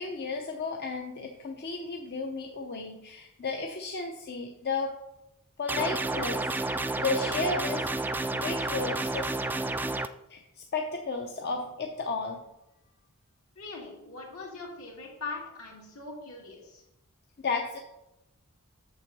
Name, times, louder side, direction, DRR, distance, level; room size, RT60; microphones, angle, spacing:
voice 1, 0.0-5.0 5.6-7.9 8.3-9.3 10.3-12.4 17.4-17.8, left 4 dB, 50° left, 2 dB, 0.7 m, -33 dB
sound 1, 5.7-10.1, right 2 dB, 10° right, 0.3 m, -30 dB
voice 2, 13.6-16.8, left 3 dB, 75° left, -2 dB, 2.7 m, -41 dB
7.4 x 6.8 x 5.4 m, 0.92 s
head